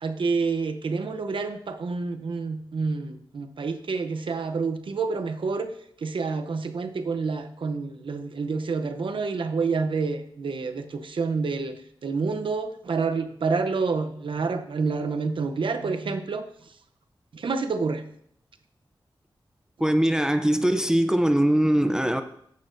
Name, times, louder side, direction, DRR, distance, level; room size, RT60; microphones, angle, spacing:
voice 1, 0.0-5.7 6.0-16.5 17.3-18.0, right 4 dB, 75° right, 0.7 m, -28 dB
voice 2, 19.8-22.2, right 1 dB, 5° right, 0.5 m, -21 dB
12.5 x 8.4 x 2.6 m
wide cardioid pair, 85°, 9 cm